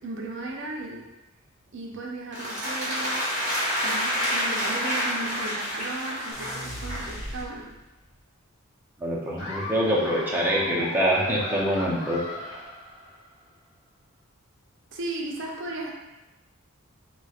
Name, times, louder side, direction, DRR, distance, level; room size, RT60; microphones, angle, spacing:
voice 1, 0.0-1.1 1.7-3.3 3.8-7.7 14.9-15.9, right 2 dB, 60° right, 0 dB, 0.5 m, -35 dB
sound 1, 2.3-7.1, equal, 35° right, 1.2 m, -28 dB
sound 2, 6.3-8.1, equal, 35° left, 0.7 m, -38 dB
voice 2, 9.0-12.2, equal, 10° right, -5 dB, 0.5 m, -25 dB
Laughter, 9.4-13.4, left 1 dB, 70° left, 1.3 m, -38 dB
3.1 x 3.1 x 2.3 m, 1.0 s
head